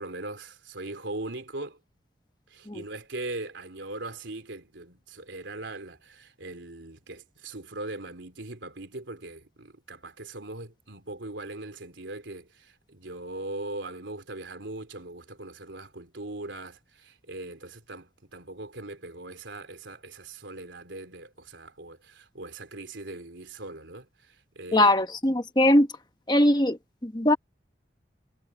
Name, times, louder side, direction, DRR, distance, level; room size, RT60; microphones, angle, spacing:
voice 1, 0.0-1.8 2.5-25.1, right 2 dB, 90° right, 3.7 m, -40 dB
voice 2, 24.7-25.9 26.3-27.4, left 1 dB, 25° left, 1.3 m, -21 dB
head